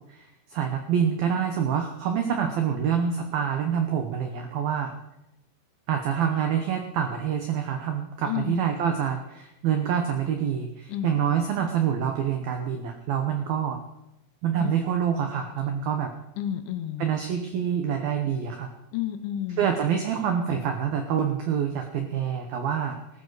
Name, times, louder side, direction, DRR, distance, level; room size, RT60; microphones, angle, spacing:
voice 1, 0.1-4.9 5.9-13.8 14.4-16.1 17.0-18.7 19.6-23.0, right 8 dB, 80° right, 5 dB, 2.1 m, -26 dB
voice 2, 8.3-8.7 10.9-11.2 14.6-14.8 16.4-17.1 18.9-19.7, left 11 dB, 75° left, 9 dB, 3.0 m, -31 dB
19.0 x 13.5 x 4.0 m, 0.88 s
omnidirectional pair, 5.8 m